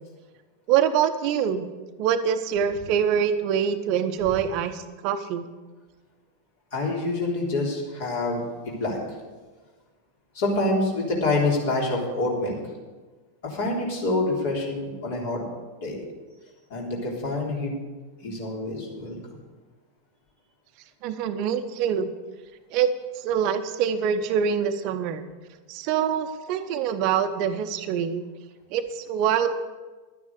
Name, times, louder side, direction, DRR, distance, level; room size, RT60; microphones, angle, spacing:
voice 1, 0.7-1.7 2.0-5.5 21.0-22.1 22.7-25.2 25.7-28.2 28.7-29.6, right 8 dB, 40° right, 10 dB, 0.7 m, -25 dB
voice 2, 6.7-9.0 10.3-12.6 13.4-15.5 15.8-16.0 16.7-17.7 18.2-19.2, left 2 dB, 50° left, -2 dB, 3.6 m, -26 dB
11.5 x 9.6 x 6.7 m, 1.3 s
figure-of-eight pair, 90°, 0 cm